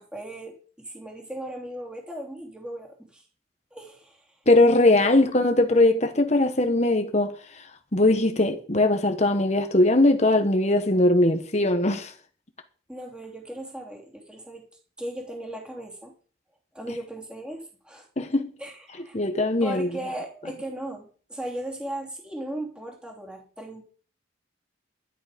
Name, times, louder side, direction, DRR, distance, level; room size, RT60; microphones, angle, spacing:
voice 1, 0.0-3.2 3.7-4.2 12.9-14.7 15.0-16.1 16.7-18.1 18.6-19.2 19.6-23.8, right 1 dB, 5° right, 3.1 m, -37 dB
voice 2, 4.5-7.3 7.9-12.1 18.2-18.5 19.1-19.9, left 2 dB, 35° left, 1.3 m, -20 dB
12.0 x 11.0 x 5.2 m
head